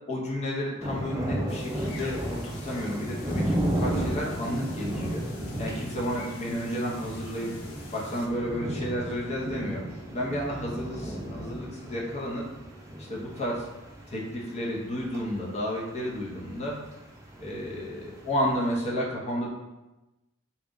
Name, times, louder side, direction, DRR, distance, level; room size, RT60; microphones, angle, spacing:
voice 1, 0.1-5.2 5.6-7.6 7.9-9.8 10.1-12.4 13.0-13.7 14.1-16.8 17.4-19.5, equal, 30° left, -3 dB, 0.8 m, -32 dB
sound 1, 0.8-18.9, right 1 dB, 15° right, 0.5 m, -35 dB
sound 2, 1.5-8.3, left 3 dB, 90° left, 0.6 m, -47 dB
3.9 x 2.4 x 3.7 m, 1.0 s
head